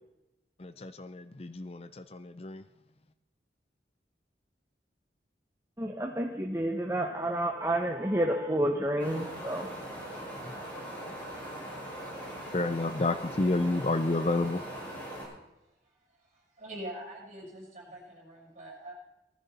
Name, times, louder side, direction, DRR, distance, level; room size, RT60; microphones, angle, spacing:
voice 1, 0.6-2.6 12.5-14.6, left 2 dB, 35° left, 12 dB, 0.5 m, -30 dB
voice 2, 5.8-9.7, right 1 dB, 15° right, 2 dB, 1.0 m, -30 dB
Wind, 9.0-15.2, right 1 dB, 10° left, 6.0 m, -41 dB
voice 3, 16.6-18.9, right 1 dB, 40° right, -4 dB, 7.5 m, -43 dB
19.0 x 14.0 x 4.2 m, 0.96 s
head